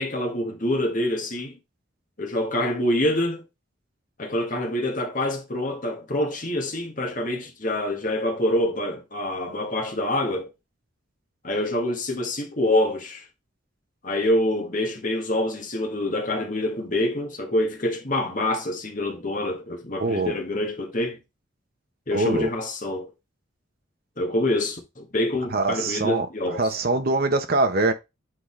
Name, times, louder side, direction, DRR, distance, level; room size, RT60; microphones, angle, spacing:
voice 1, 0.0-1.6 2.2-3.4 4.2-10.5 11.4-13.2 14.0-21.2 22.1-23.1 24.2-26.6, left 1 dB, 40° left, 1.5 m, -26 dB
voice 2, 20.0-20.3 22.1-22.5 25.5-26.3 26.5-27.9, right 2 dB, 50° right, 1.0 m, -23 dB
7.7 x 3.8 x 3.2 m
head